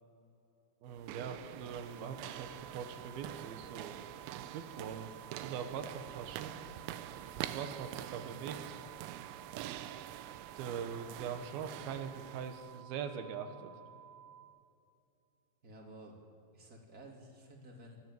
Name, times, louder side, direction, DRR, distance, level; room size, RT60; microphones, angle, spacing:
voice 1, 0.8-4.0 4.3-5.1 5.4-6.5 7.2-8.8 10.4-13.7, right 7 dB, 70° right, 7 dB, 2.6 m, -42 dB
sound 1, 0.9-12.8, right 12 dB, 85° right, 3.3 m, -45 dB
sound 2, 1.8-14.4, right 9 dB, 85° left, 4.8 m, -55 dB
voice 2, 15.6-16.2 16.5-18.0, right 1 dB, 25° right, 0 dB, 2.5 m, -53 dB
28.5 x 12.5 x 7.7 m, 2.5 s
omnidirectional pair, 5.5 m